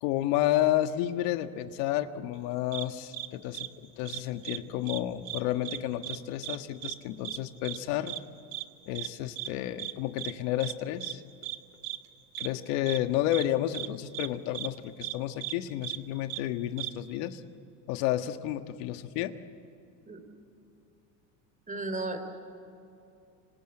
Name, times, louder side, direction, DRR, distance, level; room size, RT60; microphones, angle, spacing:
voice 1, 0.0-3.7 4.0-8.1 8.9-11.2 12.4-17.4 17.9-19.3, left 13 dB, 70° left, 8 dB, 1.5 m, -31 dB
sound 1, 2.7-2.8 3.1-3.3 3.5-3.7 4.0-4.6 4.8-5.0 5.2-5.8 6.0-6.2 6.4-6.6 6.8-6.9 7.2-7.4 7.6-7.8 8.1-8.2 8.5-8.6 8.9-9.1 9.4-9.5 9.8-9.9 10.2-10.3 10.6-10.7 11.0-11.1 11.4-11.6 11.8-12.0 12.3-12.5 12.9-13.0 13.3-13.4 13.7-13.9 14.1-14.3 14.5-14.7 15.0-15.1 15.4-15.5 15.8-16.0 16.3-16.4 16.8-16.9, right 17 dB, 55° right, 1.6 m, -36 dB
voice 2, 21.7-22.2, right 2 dB, 15° right, 8 dB, 3.5 m, -34 dB
27.0 x 26.0 x 7.8 m, 2.7 s
supercardioid pair, 125°, 50 cm